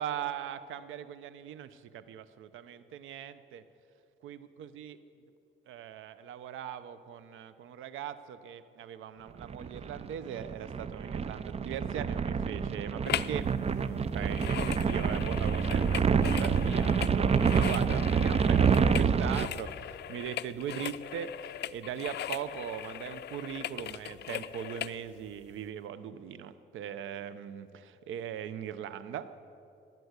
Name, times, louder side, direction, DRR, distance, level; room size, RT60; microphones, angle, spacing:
voice 1, 0.0-3.6 4.2-5.0 5.7-13.5 13.8-29.3, right 9 dB, 85° right, 14 dB, 0.8 m, -40 dB
sound 1, 9.4-19.5, right 6 dB, 30° right, 0.5 m, -27 dB
sound 2, 13.1-13.4 13.7-25.0 25.5-25.6, left 12 dB, 60° left, 0.5 m, -39 dB
16.5 x 9.5 x 8.1 m, 2.7 s
cardioid pair, 90°, 20 cm